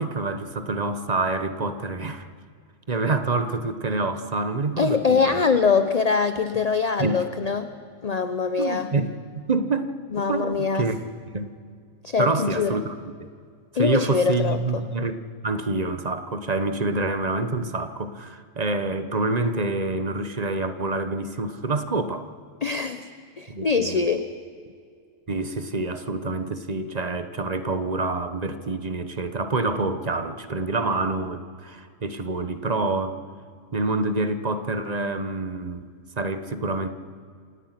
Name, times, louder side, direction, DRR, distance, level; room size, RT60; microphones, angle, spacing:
voice 1, 0.0-2.3 2.9-5.4 7.0-7.2 8.6-9.9 10.3-11.0 11.3-11.5 12.2-12.9 13.2-13.3 13.8-22.3 23.5-24.0 25.3-33.2 33.7-35.9 36.2-36.9, right 3 dB, 30° right, 10 dB, 1.1 m, -27 dB
voice 2, 4.8-7.7 8.0-8.9 10.1-10.9 12.0-12.8 13.7-14.8 22.6-23.0 23.4-24.3, left 5 dB, 35° left, 10 dB, 0.7 m, -23 dB
27.0 x 18.0 x 5.9 m, 2.2 s
omnidirectional pair, 1.4 m